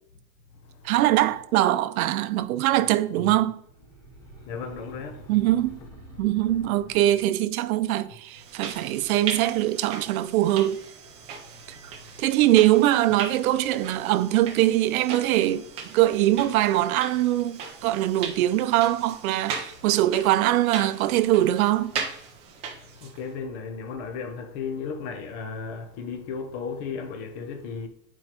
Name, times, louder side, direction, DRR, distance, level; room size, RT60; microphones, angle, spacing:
voice 1, 0.8-3.6 5.3-5.8 6.2-10.8 12.2-15.6 15.9-21.9, right 14 dB, 85° right, 0.5 m, -22 dB
sound 1, 3.5-7.5, right 1 dB, 10° left, 1.6 m, -47 dB
voice 2, 4.5-5.3 23.0-27.9, left 5 dB, 35° left, 0.6 m, -35 dB
sound 2, 8.3-23.3, right 6 dB, 15° right, 0.3 m, -38 dB
8.6 x 4.5 x 2.9 m
supercardioid pair, 170°, 41 cm